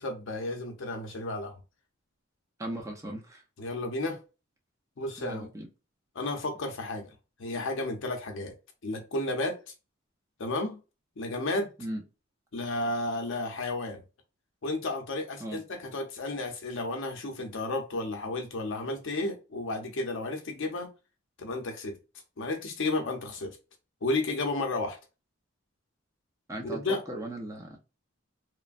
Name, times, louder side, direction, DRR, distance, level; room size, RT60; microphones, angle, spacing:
voice 1, 0.0-1.6 3.6-4.2 5.0-5.5 6.1-7.1 7.4-8.5 8.8-9.6 10.4-10.8 11.2-11.7 12.5-14.0 14.6-20.9 21.4-22.0 22.4-23.6 24.0-25.0 26.6-27.0, left 2 dB, 65° left, 0.7 m, -32 dB
voice 2, 2.6-3.4 5.2-5.7 11.8-12.0 15.4-15.6 26.5-27.8, right 1 dB, 15° right, 0.6 m, -38 dB
3.1 x 2.1 x 2.4 m
head